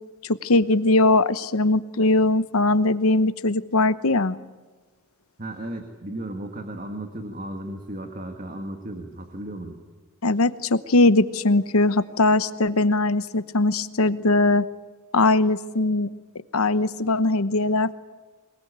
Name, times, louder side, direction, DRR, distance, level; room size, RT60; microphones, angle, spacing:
voice 1, 0.2-4.4 10.2-14.6 15.1-16.1 16.5-17.9, left 2 dB, 90° left, 13 dB, 1.0 m, -20 dB
voice 2, 5.4-9.8, right 1 dB, 40° right, 4 dB, 1.9 m, -35 dB
23.0 x 21.5 x 8.9 m, 1.3 s
head